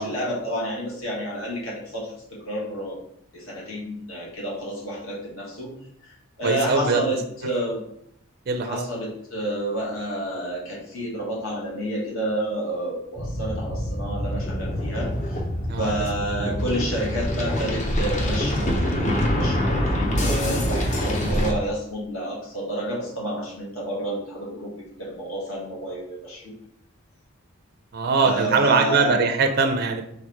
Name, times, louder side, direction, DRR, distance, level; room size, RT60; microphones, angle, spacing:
voice 1, 0.0-2.1 2.4-3.0 3.3-5.7 6.4-7.8 8.6-15.4 15.8-24.7 25.0-26.4 28.1-29.2, right 1 dB, 65° left, -4 dB, 1.7 m, -29 dB
voice 2, 6.4-7.0 8.5-8.8 15.7-15.9 21.2-21.5 27.9-30.0, right 4 dB, 45° right, 4 dB, 0.4 m, -22 dB
sound 1, 13.2-21.5, equal, 35° left, 0.6 m, -25 dB
3.4 x 3.3 x 4.6 m, 0.73 s
head